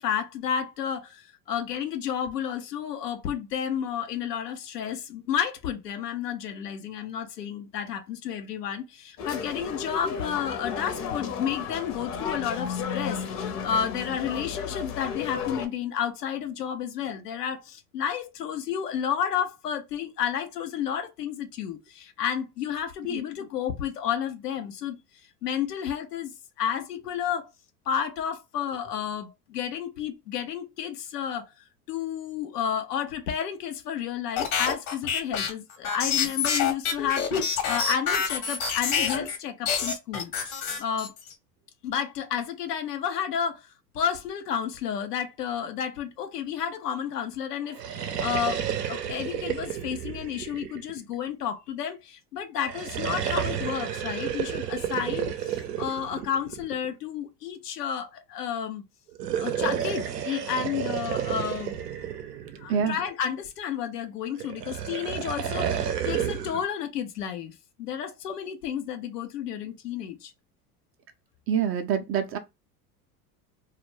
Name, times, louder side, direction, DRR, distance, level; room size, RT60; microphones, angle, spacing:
voice 1, 0.0-25.0 25.4-26.3 26.6-27.5 27.9-41.1 41.8-58.8 59.4-61.8 62.6-70.3, left 8 dB, 90° left, 0.6 m, -31 dB
sound 1, 9.2-15.7, left 6 dB, 45° left, 0.7 m, -33 dB
sound 2, 34.4-39.4 39.6-41.3, left 6 dB, 65° left, 1.0 m, -27 dB
sound 3, 47.7-51.3 52.6-56.9 59.1-63.1 64.4-66.7, right 9 dB, 85° right, 0.6 m, -31 dB
voice 2, 71.5-72.4, right 8 dB, 30° right, 0.4 m, -26 dB
2.3 x 2.1 x 3.1 m
hypercardioid pair, 85°, 47 cm